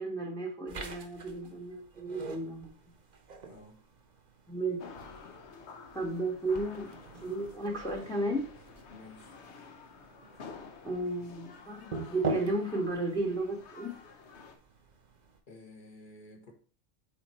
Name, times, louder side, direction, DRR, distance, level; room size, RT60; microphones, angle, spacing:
voice 1, 0.0-2.7 4.5-4.8 5.9-6.9 7.2-8.4 10.8-14.0, right 2 dB, 5° left, 0.7 m, -33 dB
sound 1, 0.7-15.4, right 3 dB, 45° right, 0.8 m, -44 dB
voice 2, 3.4-3.8 8.9-9.3 15.5-16.5, left 2 dB, 45° left, 1.3 m, -52 dB
sound 2, 4.8-14.6, left 5 dB, 70° left, 1.1 m, -51 dB
5.5 x 4.3 x 4.2 m
omnidirectional pair, 1.2 m